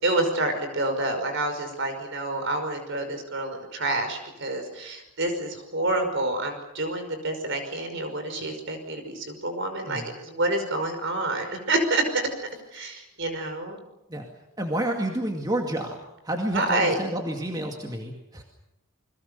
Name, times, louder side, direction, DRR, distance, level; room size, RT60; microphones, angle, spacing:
voice 1, 0.0-12.2 12.7-13.8 16.5-17.0, right 2 dB, 55° right, 7 dB, 5.5 m, -28 dB
voice 2, 14.6-16.0 16.2-18.4, right 1 dB, 15° right, 2 dB, 2.3 m, -29 dB
29.0 x 22.0 x 6.9 m, 0.92 s
head